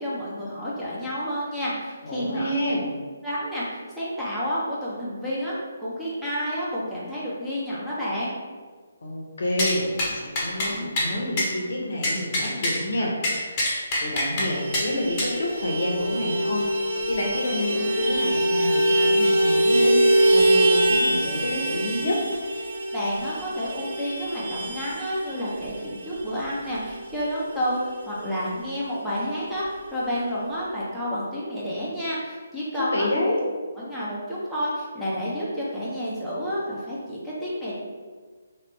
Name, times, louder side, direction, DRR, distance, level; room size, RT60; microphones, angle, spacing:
voice 1, 0.0-2.5 3.2-5.5 5.8-8.3 22.9-33.1 33.8-37.7, equal, ahead, -11 dB, 0.8 m, -30 dB
voice 2, 2.0-2.9 9.0-13.6 14.0-22.2 32.8-33.4, left 1 dB, 65° left, -2 dB, 0.8 m, -28 dB
sound 1, 9.6-9.7 10.0-10.1 10.3-10.7 11.0-11.1 11.4-11.5 12.0-12.8 13.2-14.5 14.7-14.8 15.2-15.3, left 1 dB, 30° left, 0.9 m, -24 dB
Vehicle horn car horn honking, 14.4-28.3 28.6-28.7 29.0-29.2 29.4-30.1, right 1 dB, 60° right, 0.7 m, -24 dB
3.0 x 2.9 x 3.2 m, 1.5 s
figure-of-eight pair, 145°, 0 cm